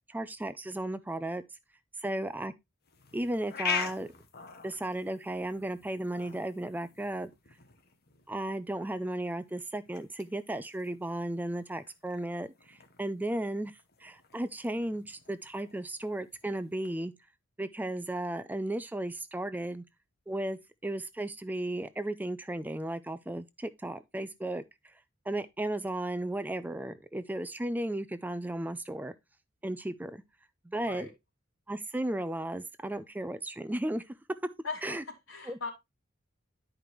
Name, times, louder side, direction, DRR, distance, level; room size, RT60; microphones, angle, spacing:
voice 1, 0.1-1.4 2.0-2.5 3.1-4.1 4.6-7.3 8.3-17.1 17.6-19.8 20.3-24.9 25.3-29.1 29.6-30.2 30.6-31.1 31.7-34.1 34.8-35.0 35.5-35.7, right 1 dB, 10° right, 0.4 m, -35 dB
sound 1, 2.8-16.9, left 6 dB, 50° left, 1.1 m, -43 dB
voice 2, 34.6-35.0 35.3-35.7, left 4 dB, 75° left, 2.7 m, -38 dB
11.0 x 5.1 x 3.0 m
head